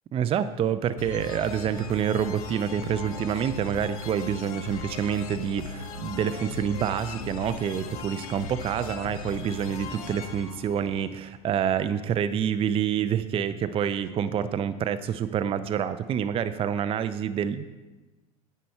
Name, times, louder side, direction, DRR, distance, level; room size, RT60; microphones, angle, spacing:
voice 1, 0.1-17.6, right 8 dB, 30° right, 11 dB, 0.5 m, -27 dB
sound 1, 1.0-11.6, left 4 dB, 70° left, 0.9 m, -38 dB
10.0 x 8.1 x 4.4 m, 1.2 s
figure-of-eight pair, 70°, 19 cm